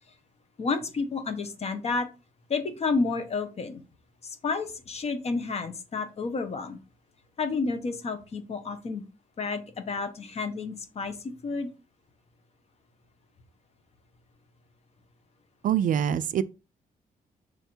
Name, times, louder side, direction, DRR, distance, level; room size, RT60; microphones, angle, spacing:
voice 1, 0.6-2.1 2.5-3.8 4.2-6.8 7.4-9.0 9.4-11.2 11.4-11.7, left 4 dB, 45° left, 1.1 m, -30 dB
voice 2, 15.6-16.4, right 9 dB, 60° right, 0.4 m, -24 dB
6.5 x 3.4 x 4.4 m
wide cardioid pair, 155°, 15 cm